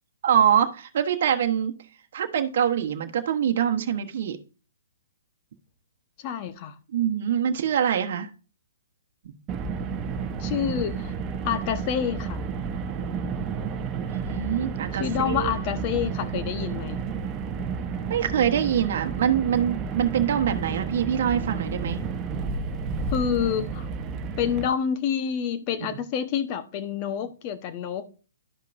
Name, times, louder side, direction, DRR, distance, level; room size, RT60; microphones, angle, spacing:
voice 1, 0.2-1.7 2.1-4.4 6.9-8.3 14.1-15.5 18.1-22.0, right 9 dB, 55° right, 1.1 m, -24 dB
voice 2, 6.2-6.7 10.4-11.1 11.4-12.4 14.9-17.0 23.1-23.9 24.4-28.1, left 8 dB, 35° left, 1.1 m, -28 dB
Car, 9.5-24.7, right 5 dB, 20° right, 0.9 m, -31 dB
12.0 x 5.3 x 2.6 m
hypercardioid pair, 135°, 0 cm